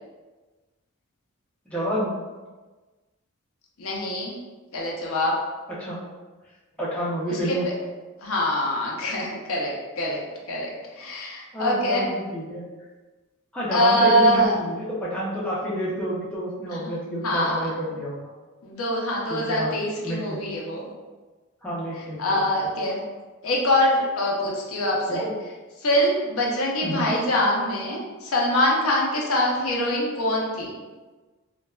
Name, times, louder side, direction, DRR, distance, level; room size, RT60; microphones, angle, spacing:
voice 1, 1.7-2.1 5.8-6.0 6.8-7.6 11.5-12.6 13.5-18.2 19.3-19.7 20.0-20.5 21.6-22.4 25.1-25.2 26.8-27.0, equal, 5° left, -8 dB, 0.5 m, -29 dB
voice 2, 3.8-4.4 4.7-5.3 7.3-7.7 8.2-10.2 10.5-12.1 13.7-14.6 16.7-16.9 17.2-17.7 18.6-20.9 22.0-23.0 23.4-25.5 25.8-30.7, equal, 75° left, -3 dB, 0.6 m, -24 dB
3.2 x 2.2 x 2.2 m, 1.3 s
head